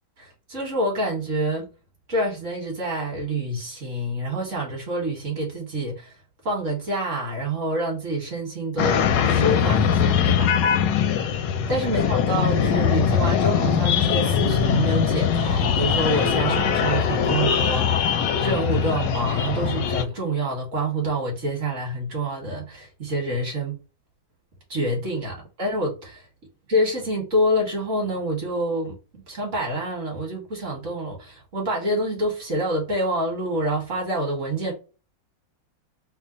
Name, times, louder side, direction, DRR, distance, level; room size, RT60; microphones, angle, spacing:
voice 1, 0.2-1.7 2.1-6.1 6.4-10.5 11.2-11.3 11.7-23.8 24.7-26.2 26.7-29.0 29.3-34.7, right 1 dB, 40° right, 1.4 m, -27 dB
sound 1, 8.8-20.0, left 7 dB, 75° left, 1.0 m, -21 dB
3.4 x 2.1 x 3.7 m
omnidirectional pair, 2.3 m